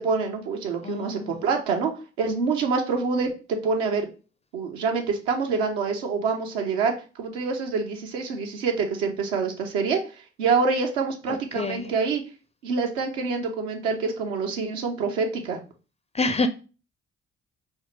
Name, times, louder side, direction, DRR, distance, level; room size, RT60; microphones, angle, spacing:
voice 1, 0.0-1.9 2.2-4.1 4.5-10.0 10.4-12.2 12.6-15.6, right 4 dB, 75° right, 2 dB, 0.8 m, -26 dB
voice 2, 0.8-1.5 11.3-11.9 16.1-16.5, left 3 dB, 20° left, 8 dB, 0.4 m, -28 dB
5.3 x 2.1 x 3.1 m, 0.34 s
figure-of-eight pair, 45°, 34 cm